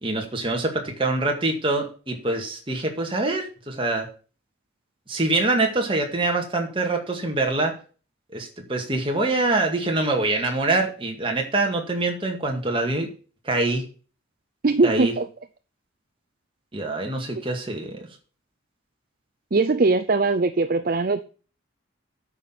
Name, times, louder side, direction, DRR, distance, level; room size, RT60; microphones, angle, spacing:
voice 1, 0.0-4.1 5.1-7.8 8.3-13.1 13.4-13.9 14.8-15.1 16.7-18.1, right 2 dB, 25° right, 2 dB, 2.0 m, -25 dB
voice 2, 14.6-15.2 19.5-21.2, right 3 dB, 45° right, 10 dB, 0.5 m, -20 dB
9.1 x 6.0 x 7.3 m, 0.38 s
head